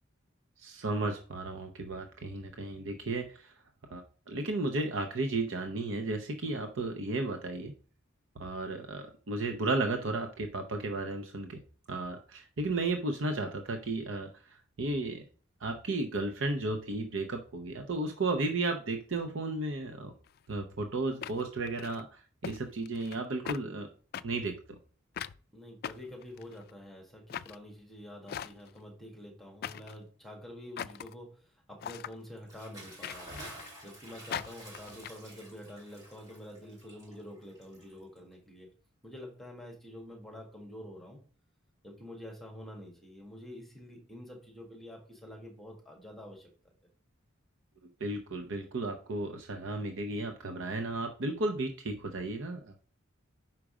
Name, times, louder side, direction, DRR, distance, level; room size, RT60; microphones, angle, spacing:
voice 1, 0.6-3.5 3.9-4.0 4.3-7.7 8.4-11.6 11.9-15.2 15.6-20.1 20.5-23.9 24.2-24.8 48.0-52.8, right 2 dB, 65° right, 5 dB, 0.7 m, -34 dB
sound 1, 20.3-20.4 21.2-22.0 22.4-22.6 22.9-23.2 23.5-23.6 24.1-24.2 25.2-25.4 25.8-26.7 27.3-27.6 28.3-28.8 29.6-30.0 30.8-31.1 31.8-32.1 33.0-33.7 34.3-35.1, left 9 dB, 50° left, 0.3 m, -40 dB
voice 2, 25.5-33.4 33.8-38.7 39.0-41.2 41.8-46.5, left 1 dB, ahead, -1 dB, 1.6 m, -47 dB
Bathtub (filling or washing) / Splash splatter, 32.4-38.3, right 1 dB, 20° right, 3.5 m, -50 dB
5.9 x 5.0 x 4.9 m, 0.41 s
head